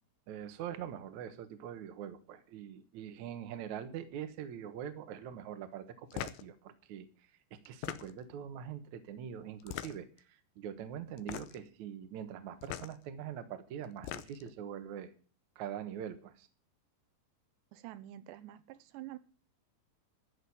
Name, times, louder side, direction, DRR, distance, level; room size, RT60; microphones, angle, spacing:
voice 1, 0.3-7.1 7.5-15.1 15.6-16.5, right 9 dB, 65° right, 10 dB, 1.9 m, -43 dB
sound 1, 6.1-6.5 7.6-8.3 9.6-10.2 11.2-11.7 12.6-12.9 13.8-14.5, left 13 dB, 90° left, 2.0 m, -41 dB
voice 2, 17.7-19.2, right 14 dB, 80° right, 14 dB, 3.1 m, -47 dB
13.5 x 6.4 x 9.8 m, 0.39 s
omnidirectional pair, 5.1 m